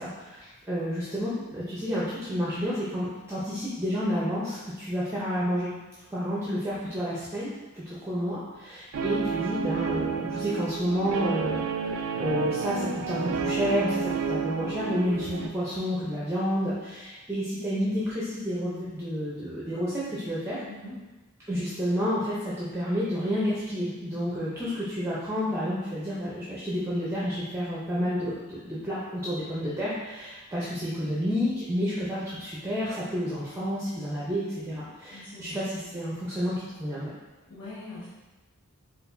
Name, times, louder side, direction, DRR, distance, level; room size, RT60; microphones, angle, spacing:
voice 1, 0.0-5.7 6.1-20.6 21.5-37.1, equal, 10° right, -8 dB, 0.5 m, -30 dB
Guitar, 8.9-15.5, right 5 dB, 60° right, 0.3 m, -30 dB
voice 2, 20.6-21.0 33.2-33.5 33.9-34.0 35.1-36.0 37.5-38.1, left 2 dB, 85° left, -11 dB, 1.1 m, -44 dB
4.6 x 2.5 x 2.5 m, 1.2 s
head